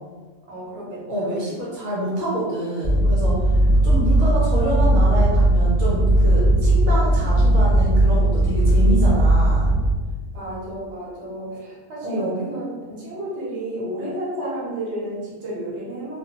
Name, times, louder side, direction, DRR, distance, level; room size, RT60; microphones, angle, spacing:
voice 1, 0.5-1.3 10.3-16.2, right 1 dB, 55° right, -7 dB, 1.1 m, -31 dB
voice 2, 1.1-9.7 12.0-12.4, right 1 dB, 80° right, -6 dB, 1.1 m, -27 dB
sound 1, 2.8-9.9, right 1 dB, 10° right, 0.8 m, -17 dB
2.5 x 2.2 x 2.8 m, 1.4 s
omnidirectional pair, 1.4 m